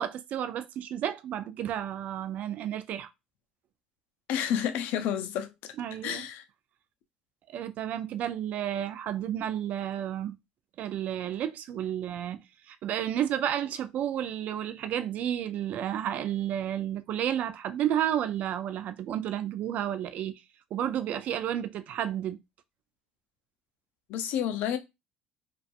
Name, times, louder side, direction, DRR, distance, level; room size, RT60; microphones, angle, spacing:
voice 1, 0.0-3.1 5.8-6.3 7.5-10.4 10.8-20.3 20.7-22.4, right 10 dB, 55° right, 0.3 m, -31 dB
voice 2, 4.3-5.5 6.0-6.4 24.1-24.8, left 9 dB, 70° left, 0.4 m, -30 dB
2.5 x 2.3 x 2.4 m
supercardioid pair, 95°, 3 cm